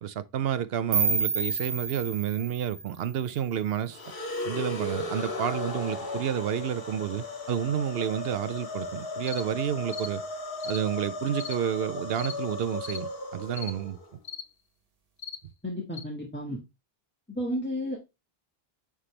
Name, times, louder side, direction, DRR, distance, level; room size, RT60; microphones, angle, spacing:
voice 1, 0.0-4.0 4.4-10.2 10.6-14.0, right 9 dB, 75° right, 0.8 m, -30 dB
sound 1, 0.9-3.8, right 4 dB, 40° right, 0.9 m, -30 dB
sound 2, 3.9-14.1, left 2 dB, 65° left, 1.6 m, -36 dB
sound 3, 9.2-9.4 9.9-10.1 10.6-10.8 11.4-11.6 12.1-12.4 12.8-13.0 13.5-13.7 14.2-14.4 15.2-15.4 15.9-16.0, left 7 dB, 50° left, 0.7 m, -39 dB
voice 2, 15.6-16.6 17.3-18.0, equal, 10° left, 1.5 m, -32 dB
9.7 x 3.5 x 3.2 m
omnidirectional pair, 1.0 m